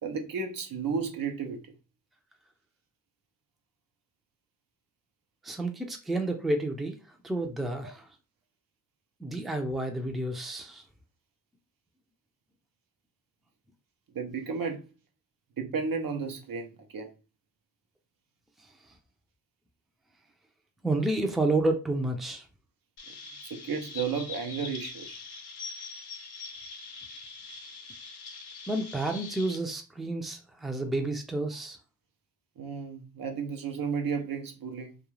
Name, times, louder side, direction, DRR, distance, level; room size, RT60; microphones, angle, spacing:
voice 1, 0.0-1.7 14.1-14.9 15.6-17.1 23.4-25.2 32.6-35.0, right 5 dB, 60° right, 0.7 m, -33 dB
voice 2, 5.4-7.0 7.2-8.1 9.2-10.8 20.8-22.5 28.7-31.8, right 2 dB, ahead, 0.5 m, -30 dB
Chirp tweet, 23.0-29.5, left 4 dB, 80° left, 0.6 m, -43 dB
2.4 x 2.3 x 3.1 m
cardioid pair, 65°, 38 cm